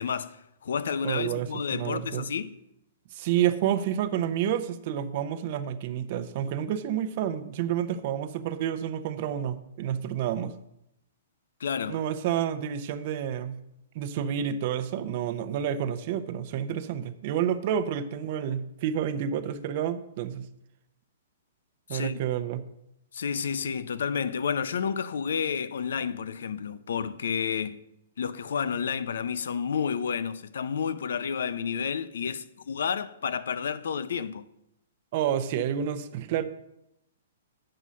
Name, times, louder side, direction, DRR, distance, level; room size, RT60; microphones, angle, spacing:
voice 1, 0.0-2.5 11.6-12.0 21.9-22.2 23.1-27.8 28.2-34.5, left 7 dB, 80° left, 0.5 m, -30 dB
voice 2, 1.0-2.3 3.1-10.6 11.9-13.6 13.9-20.5 21.9-22.7 35.1-36.4, right 9 dB, 45° right, 0.7 m, -29 dB
7.7 x 5.6 x 6.2 m
hypercardioid pair, 155°, 0 cm